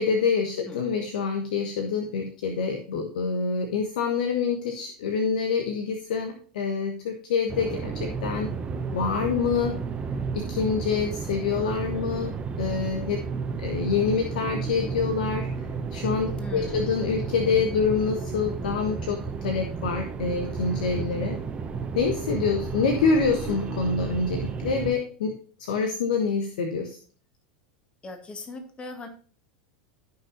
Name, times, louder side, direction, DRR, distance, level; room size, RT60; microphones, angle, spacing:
voice 1, 0.0-8.5 8.9-9.8 10.3-13.2 13.6-15.5 15.9-21.4 21.9-25.3 25.6-27.0, left 5 dB, 70° left, 6 dB, 1.2 m, -26 dB
sound 1, 7.5-24.9, right 5 dB, 25° right, 1.3 m, -32 dB
voice 2, 16.4-16.9 28.0-29.1, left 2 dB, 25° left, 5 dB, 2.1 m, -39 dB
14.0 x 5.9 x 2.8 m, 0.42 s
hypercardioid pair, 90°, 5 cm